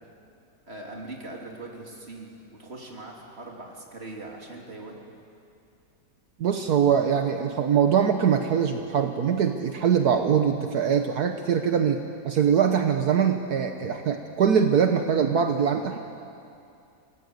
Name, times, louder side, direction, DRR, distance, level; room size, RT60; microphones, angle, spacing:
voice 1, 0.7-5.0 15.9-16.0, right 2 dB, 40° right, -1 dB, 3.3 m, -41 dB
voice 2, 6.4-16.0, right 7 dB, 70° right, 5 dB, 1.5 m, -23 dB
27.0 x 19.0 x 7.9 m, 2.5 s
omnidirectional pair, 1.8 m